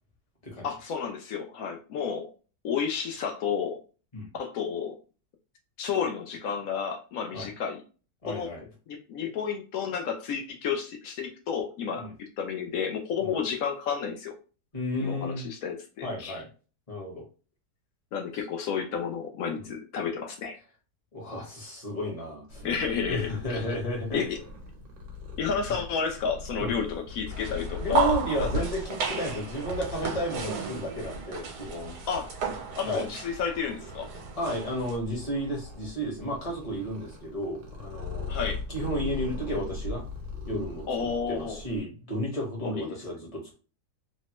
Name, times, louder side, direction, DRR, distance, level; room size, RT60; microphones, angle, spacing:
voice 1, 0.6-2.3 2.6-3.8 4.3-5.0 5.8-7.8 8.3-8.5 8.9-14.3 15.0-16.4 18.1-20.6 22.6-23.6 24.1-24.4 25.3-28.7 32.1-32.3 32.8-34.1 38.3-38.6 40.9-41.6 42.6-42.9, left 6 dB, 70° left, 4 dB, 0.9 m, -31 dB
voice 2, 8.2-8.6 12.0-12.1 13.2-13.4 14.7-15.5 16.0-16.5 16.9-17.2 19.6-19.7 21.1-22.7 23.1-24.3 26.6-26.7 27.8-32.0 32.8-33.1 34.4-38.3 38.7-40.0 40.4-43.5, equal, 25° left, -2 dB, 0.9 m, -33 dB
Purr, 22.5-41.8, left 3 dB, 55° right, 1.0 m, -41 dB
sound 1, 27.3-35.0, right 5 dB, 75° right, 1.3 m, -33 dB
3.1 x 2.1 x 2.9 m, 0.35 s
omnidirectional pair, 1.8 m